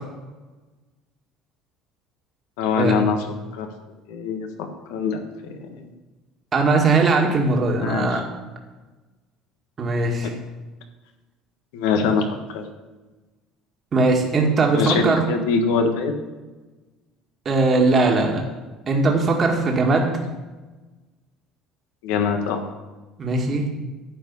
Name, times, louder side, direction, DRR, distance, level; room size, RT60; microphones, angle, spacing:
voice 1, 2.6-3.2 3.5-3.7 4.1-5.2 5.5-5.7 7.8-8.2 10.2-10.3 11.7-12.2 12.5-12.6 14.7-16.1 20.0-20.1 22.0-22.7, left 5 dB, 85° left, 5 dB, 1.5 m, -23 dB
voice 2, 6.5-8.2 9.8-10.3 13.9-15.2 17.5-18.4 18.9-20.1 23.2-23.6, right 3 dB, 40° right, 1 dB, 2.0 m, -19 dB
11.5 x 4.8 x 8.4 m, 1.2 s
supercardioid pair, 90°, 0 cm